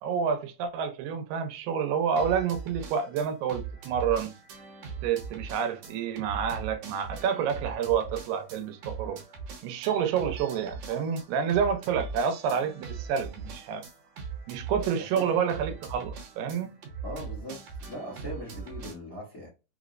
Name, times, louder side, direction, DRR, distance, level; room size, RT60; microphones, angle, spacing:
voice 1, 0.0-4.3 5.0-9.2 9.6-13.8 14.5-16.7, right 7 dB, 90° right, 2.4 m, -29 dB
sound 1, 2.2-18.9, right 5 dB, 70° right, 1.7 m, -40 dB
voice 2, 15.1-15.8 17.0-19.5, equal, 75° left, 0.8 m, -41 dB
5.4 x 2.0 x 2.4 m
omnidirectional pair, 4.0 m